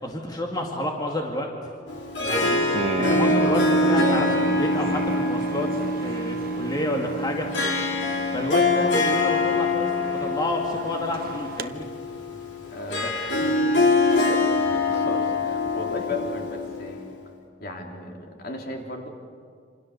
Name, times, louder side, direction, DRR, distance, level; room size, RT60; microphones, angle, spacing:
voice 1, 0.0-1.5 2.2-5.7 6.0-7.5 8.3-11.9, left 1 dB, 25° left, 0 dB, 2.3 m, -29 dB
Harp, 1.9-17.1, left 2 dB, 70° left, 3.5 m, -24 dB
sound 1, 2.3-11.7, right 2 dB, 55° right, 0.8 m, -32 dB
voice 2, 12.7-13.6 14.2-17.0 17.6-19.1, left 2 dB, 55° left, 1 dB, 3.6 m, -35 dB
27.5 x 27.0 x 6.9 m, 2.2 s
head